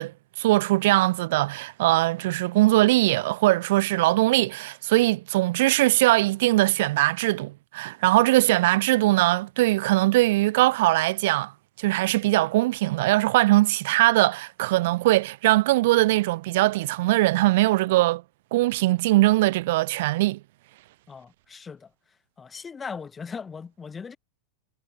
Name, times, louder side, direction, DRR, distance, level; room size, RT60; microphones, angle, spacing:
voice 1, 0.0-11.5 11.8-18.2 18.5-20.4, right 18 dB, 50° right, 2.5 m, -21 dB
voice 2, 21.1-21.9 22.4-24.2, left 5 dB, 15° left, 6.6 m, -38 dB
figure-of-eight pair, 90°, 0 cm